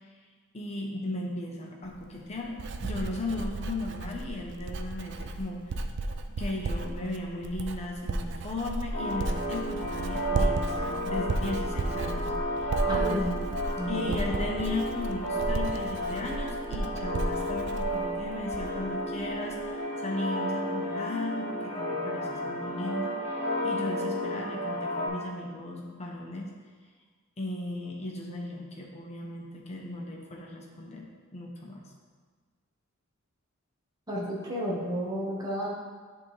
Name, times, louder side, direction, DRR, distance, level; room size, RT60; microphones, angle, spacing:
voice 1, 0.5-5.6 6.4-12.3 12.6-13.3 13.9-23.4 23.6-26.5 27.4-31.9, left 2 dB, 30° left, 0 dB, 0.8 m, -36 dB
Writing, 1.9-18.9 19.2-19.6, right 2 dB, 60° right, 0.4 m, -34 dB
sound 1, 8.9-25.1, equal, 10° left, 1.8 m, -32 dB
voice 2, 12.9-13.3 13.8-14.2 34.1-35.7, equal, 20° right, -5 dB, 1.3 m, -32 dB
10.5 x 3.6 x 3.3 m, 1.5 s
head